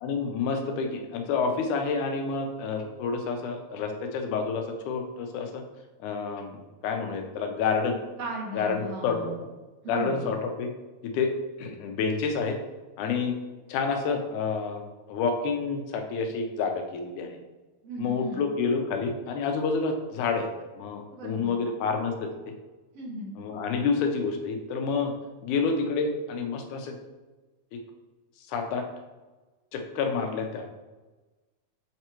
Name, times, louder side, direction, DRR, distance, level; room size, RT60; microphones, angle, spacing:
voice 1, 0.0-5.6 6.0-8.0 8.5-9.3 9.9-10.7 11.0-11.3 11.6-12.6 13.0-13.4 13.7-14.8 15.1-17.4 18.0-20.5 20.8-22.3 23.4-25.1 25.4-27.0 28.5-28.9 29.7-30.7, left 5 dB, 85° left, 4 dB, 2.2 m, -28 dB
voice 2, 8.2-9.3 9.8-10.2 17.8-18.5 21.1-21.6 22.9-23.3, right 2 dB, 60° right, -1 dB, 1.9 m, -37 dB
7.6 x 4.6 x 3.0 m, 1.2 s
omnidirectional pair, 3.5 m